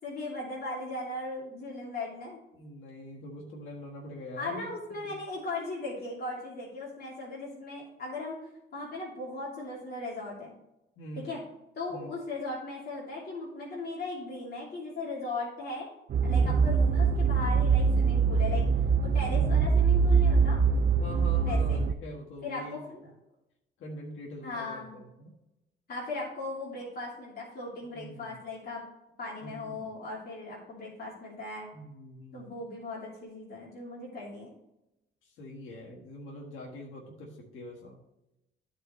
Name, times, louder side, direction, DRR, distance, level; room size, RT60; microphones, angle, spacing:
voice 1, 0.0-2.4 4.4-8.4 8.7-10.5 11.2-11.4 11.8-15.9 16.2-18.6 19.0-20.6 21.4-21.8 22.4-23.1 24.4-25.0 25.9-28.8 29.2-31.7 32.3-34.5, left 2 dB, 50° left, -5 dB, 2.8 m, -38 dB
voice 2, 2.5-5.2 11.0-11.3 11.9-12.2 16.4-16.7 19.3-19.8 20.9-22.8 23.8-25.3 27.9-28.4 29.4-29.9 31.7-32.6 35.2-38.0, equal, 85° left, -2 dB, 1.6 m, -43 dB
sound 1, 16.1-21.9, right 5 dB, 45° right, 0.5 m, -24 dB
13.0 x 4.8 x 3.1 m, 0.89 s
cardioid pair, 90°, 20 cm